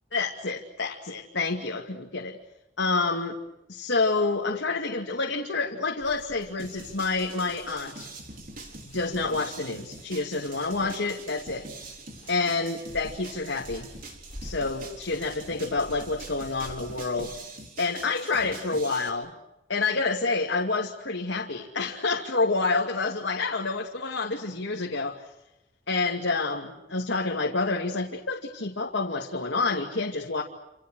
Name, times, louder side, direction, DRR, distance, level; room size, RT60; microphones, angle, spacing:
voice 1, 0.1-2.4 2.8-3.4 3.7-8.1 8.8-11.7 12.3-13.9 14.4-17.3 17.8-19.3 19.7-25.3 25.9-30.4, left 3 dB, 80° left, 0 dB, 2.5 m, -28 dB
sound 1, 6.0-17.3, equal, 35° left, 7.1 m, -49 dB
sound 2, 6.6-19.1, right 3 dB, 50° right, 4.0 m, -44 dB
29.0 x 28.0 x 6.4 m, 0.92 s
head